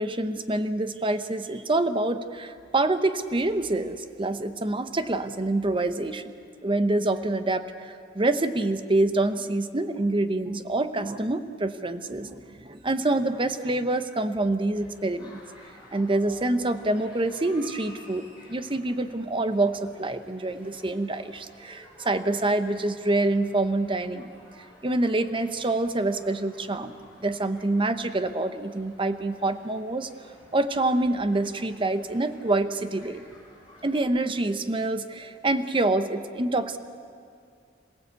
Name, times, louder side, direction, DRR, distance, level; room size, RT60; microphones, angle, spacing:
voice 1, 0.0-6.3 6.6-15.4 15.9-24.3 24.8-26.9 27.2-30.1 30.5-33.3 33.8-36.8, right 2 dB, 30° right, 10 dB, 0.9 m, -26 dB
sound 1, 14.8-34.0, left 1 dB, 5° right, 7.5 m, -53 dB
27.0 x 17.0 x 8.2 m, 2.4 s
head